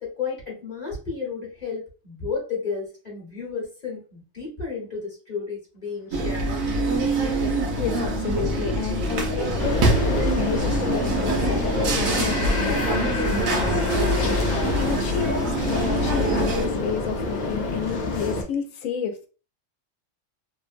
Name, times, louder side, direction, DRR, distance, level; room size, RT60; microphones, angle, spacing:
voice 1, 0.0-6.6 10.0-10.3, left 5 dB, 35° left, 0.9 m, -33 dB
sound 1, 6.1-16.7, right 1 dB, 85° right, 1.1 m, -24 dB
voice 2, 7.5-10.0 10.4-19.3, left 7 dB, 85° left, 1.0 m, -31 dB
sound 2, 8.0-9.2, right 1 dB, 60° right, 0.8 m, -40 dB
sound 3, 9.6-18.4, left 3 dB, 55° left, 0.5 m, -28 dB
2.9 x 2.0 x 2.4 m
omnidirectional pair, 1.4 m